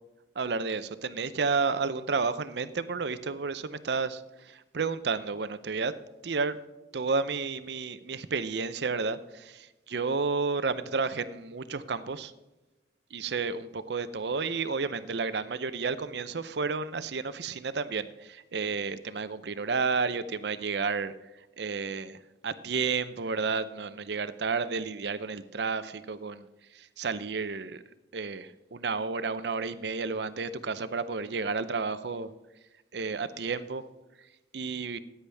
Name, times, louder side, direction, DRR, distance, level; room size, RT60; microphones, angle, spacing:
voice 1, 0.4-5.9 6.2-6.6 6.9-12.3 13.1-21.1 21.6-26.5 26.7-27.8 28.1-32.3 32.9-33.8 34.5-35.0, right 4 dB, 65° right, 13 dB, 0.6 m, -31 dB
13.5 x 9.9 x 3.4 m, 1.1 s
head